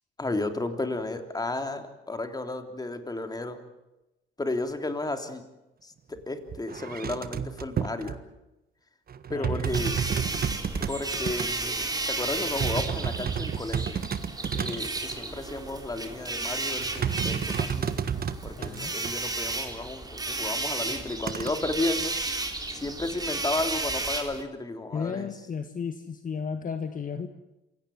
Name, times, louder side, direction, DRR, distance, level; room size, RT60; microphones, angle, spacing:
voice 1, 0.2-3.6 4.4-5.4 5.8-8.2 9.3-9.9 10.9-14.0 14.6-18.0 18.4-22.1 22.7-25.3, left 2 dB, 20° left, 7 dB, 3.4 m, -33 dB
sound 1, 6.2-6.3 6.5-8.2 9.1-11.5 12.3-15.2 16.7-19.1 21.3-21.5, right 7 dB, 50° right, 1.5 m, -31 dB
voice 2, 9.3-10.4 14.5-14.9 18.6-18.9 22.3-22.8 24.9-27.3, left 6 dB, 45° left, 8 dB, 1.6 m, -36 dB
sound 2, 9.6-24.4, right 3 dB, 20° right, 3.7 m, -33 dB
27.0 x 17.5 x 9.5 m, 0.96 s
cardioid pair, 90°, 20 cm